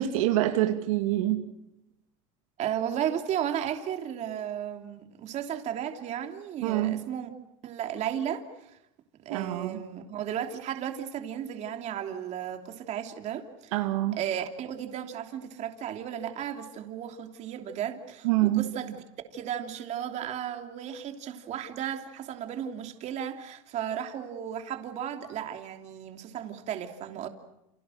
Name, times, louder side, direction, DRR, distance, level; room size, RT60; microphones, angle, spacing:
voice 1, 0.0-1.4 6.6-7.0 9.3-9.8 13.7-14.2 18.2-18.7, right 14 dB, 85° right, 5 dB, 2.6 m, -26 dB
voice 2, 2.6-7.3 7.6-8.8 9.2-13.7 14.2-19.0 19.3-27.3, right 9 dB, 45° right, 5 dB, 3.1 m, -34 dB
29.0 x 28.5 x 6.5 m, 0.86 s
supercardioid pair, 125°, 17 cm